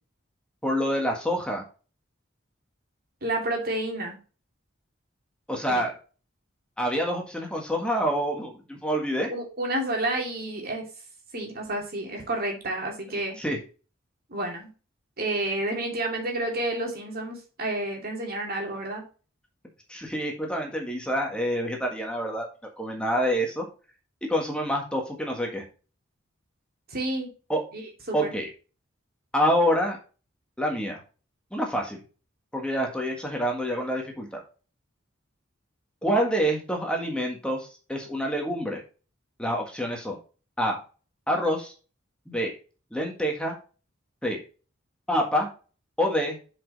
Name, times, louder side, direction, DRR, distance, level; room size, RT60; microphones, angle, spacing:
voice 1, 0.6-1.6 5.5-5.9 6.8-9.3 13.4-13.6 19.9-22.5 22.8-23.6 24.3-25.6 27.5-27.6 28.1-28.5 29.3-30.0 30.6-31.0 31.5-32.0 32.5-34.4 36.0-38.8 39.4-40.2 40.6-40.8 41.3-41.7 42.3-42.5 42.9-43.5 44.2-44.4 45.1-45.5 46.0-46.4, equal, 5° left, 1 dB, 1.6 m, -27 dB
voice 2, 3.2-4.2 5.7-5.8 9.3-10.9 11.3-13.4 14.3-14.7 15.2-19.0 26.9-27.3 27.7-27.8 28.1-28.3, right 1 dB, 50° right, 1 dB, 2.5 m, -30 dB
7.4 x 5.2 x 4.0 m, 0.35 s
head